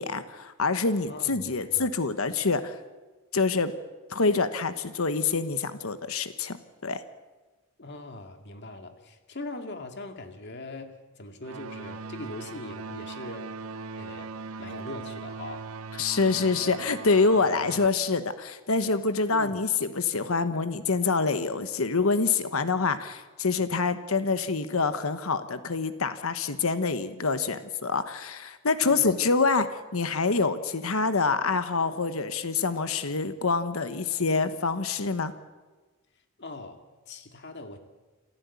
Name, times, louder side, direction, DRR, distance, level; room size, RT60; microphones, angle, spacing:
voice 1, 0.0-2.8 3.3-3.7 4.1-6.6 6.8-7.0 16.0-35.3, left 4 dB, 80° left, 11 dB, 1.2 m, -26 dB
voice 2, 1.1-1.9 7.8-13.5 13.9-15.7 19.3-19.6 28.8-29.2 36.4-37.8, left 2 dB, 55° left, 6 dB, 2.2 m, -41 dB
sound 1, 11.4-17.9, right 4 dB, 85° right, 0.7 m, -40 dB
27.5 x 14.5 x 8.4 m, 1.3 s
head